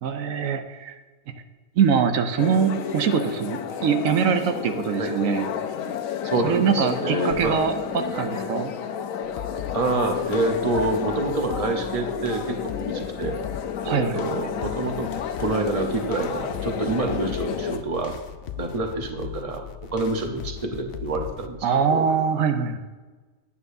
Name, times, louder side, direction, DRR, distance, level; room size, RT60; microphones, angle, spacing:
voice 1, 0.0-1.0 1.8-5.5 6.4-8.7 13.8-14.2 21.6-22.8, right 7 dB, 85° right, 7 dB, 1.1 m, -23 dB
sound 1, 2.4-17.8, left 8 dB, 85° left, 1.1 m, -31 dB
voice 2, 6.2-7.6 8.1-8.3 9.7-13.4 13.8-15.1 15.4-18.1 18.6-22.1, right 2 dB, 30° right, 4 dB, 0.9 m, -27 dB
sound 2, 7.3-10.0, equal, 40° left, 1.7 m, -46 dB
sound 3, 9.2-21.6, left 10 dB, 60° left, 0.6 m, -39 dB
9.7 x 8.9 x 2.7 m, 1.3 s
omnidirectional pair, 1.4 m